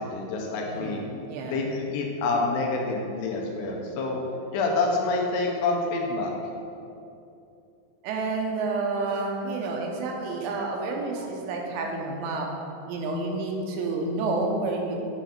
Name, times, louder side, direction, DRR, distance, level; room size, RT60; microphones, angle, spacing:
voice 1, 0.0-1.0 1.4-4.2 4.5-6.3, left 3 dB, 75° left, 0 dB, 2.8 m, -27 dB
voice 2, 0.6-1.7 8.0-12.5 12.9-15.0, right 3 dB, 80° right, 0 dB, 3.1 m, -29 dB
9.3 x 3.8 x 5.8 m, 2.7 s
omnidirectional pair, 5.1 m